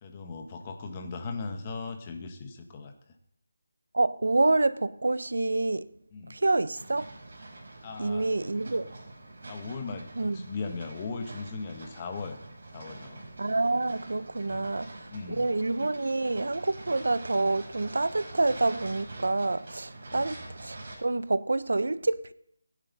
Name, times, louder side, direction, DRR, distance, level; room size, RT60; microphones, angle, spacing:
voice 1, 0.0-2.9 6.1-6.4 7.8-8.3 9.5-12.4 12.7-13.2 14.5-14.7 15.1-15.5 20.1-20.3, left 4 dB, 25° left, 1.5 m, -38 dB
voice 2, 3.9-5.9 6.3-7.1 8.0-8.9 10.2-10.4 13.4-22.3, right 2 dB, 75° right, 0.8 m, -27 dB
sound 1, 6.8-21.0, right 2 dB, 50° right, 5.3 m, -45 dB
20.0 x 9.9 x 4.1 m
figure-of-eight pair, 170°, 0 cm